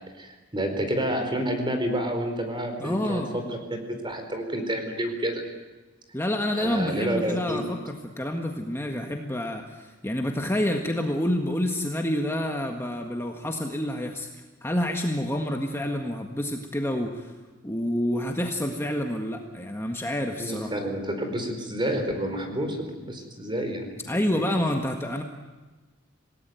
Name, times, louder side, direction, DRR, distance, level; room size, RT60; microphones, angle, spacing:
voice 1, 0.2-3.4 4.0-5.4 6.6-7.7 20.4-24.0, right 1 dB, 25° right, 6 dB, 4.3 m, -29 dB
voice 2, 2.8-3.4 6.1-14.3 14.6-17.3 17.6-20.7 24.1-25.2, left 1 dB, 15° left, 3 dB, 1.7 m, -28 dB
27.5 x 18.0 x 9.2 m, 1.2 s
head